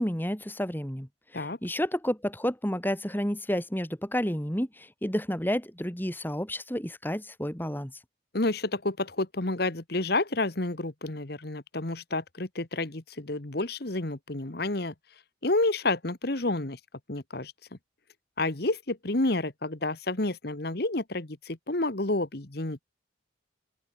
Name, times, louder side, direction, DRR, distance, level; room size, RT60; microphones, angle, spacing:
voice 1, 0.0-8.0, equal, 10° left, 3.7 m, -31 dB
voice 2, 8.3-14.9 15.4-16.8 17.1-17.5 18.4-22.8, left 2 dB, 55° left, 1.5 m, -29 dB
open air
head